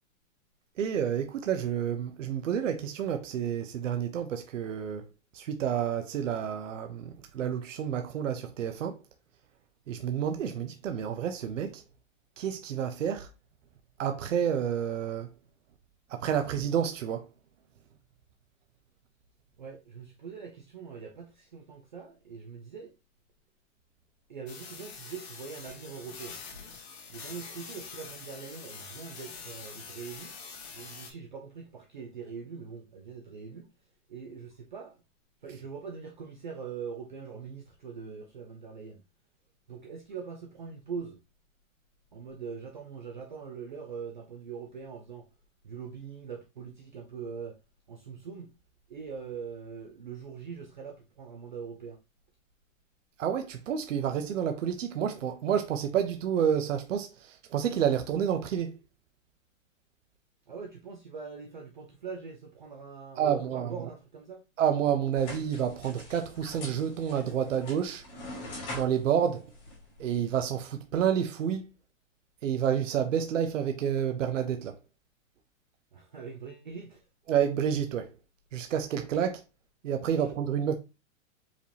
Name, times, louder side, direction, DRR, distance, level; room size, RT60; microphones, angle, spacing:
voice 1, 0.8-5.0 5.3-8.9 9.9-11.8 12.4-13.3 14.0-15.3 16.1-17.2 53.2-57.1 57.5-58.7 63.2-63.7 64.6-68.0 68.7-69.4 70.0-71.6 72.4-74.7 77.3-78.1 78.5-79.4 79.8-80.7, right 8 dB, 70° right, 0.7 m, -29 dB
voice 2, 19.6-22.9 24.3-26.4 27.1-30.4 30.7-33.7 34.1-35.0 35.4-39.0 39.7-41.2 42.1-45.2 45.6-47.5 47.9-48.5 48.9-52.0 60.5-64.4 75.9-77.0 80.1-80.3, right 6 dB, 40° right, 0.5 m, -42 dB
sound 1, 24.5-31.1, left 5 dB, 55° left, 1.4 m, -45 dB
sound 2, 65.2-70.4, left 2 dB, 20° left, 2.2 m, -44 dB
5.0 x 3.4 x 2.7 m
hypercardioid pair, 180°, 39 cm